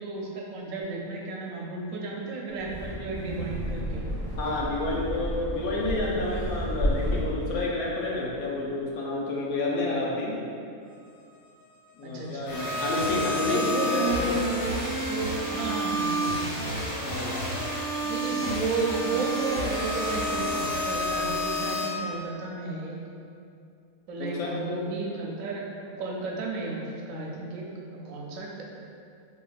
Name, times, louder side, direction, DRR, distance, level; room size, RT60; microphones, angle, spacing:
voice 1, 0.0-4.0 12.0-12.5 13.4-14.3 15.1-16.9 18.0-23.0 24.1-27.7 27.9-28.5, right 3 dB, 75° right, -2 dB, 0.9 m, -33 dB
Wind, 2.5-7.6, equal, 25° right, 1.0 m, -31 dB
voice 2, 4.4-10.4 11.9-14.4 17.0-17.4 24.2-24.5, left 2 dB, 85° left, -4 dB, 1.2 m, -30 dB
sound 1, 12.5-21.8, equal, 55° left, 1.7 m, -29 dB
4.9 x 3.0 x 2.3 m, 2.5 s
omnidirectional pair, 1.5 m